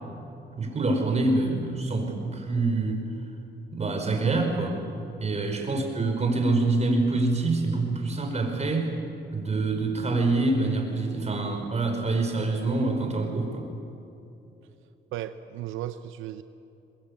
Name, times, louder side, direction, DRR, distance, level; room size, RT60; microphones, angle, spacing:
voice 1, 0.5-3.0 3.7-4.8 5.2-8.9 9.3-13.7, right 3 dB, 35° right, 3 dB, 5.0 m, -26 dB
voice 2, 15.1-16.4, right 12 dB, 90° right, 11 dB, 0.7 m, -35 dB
22.5 x 22.0 x 8.4 m, 2.8 s
cardioid pair, 90°, 20 cm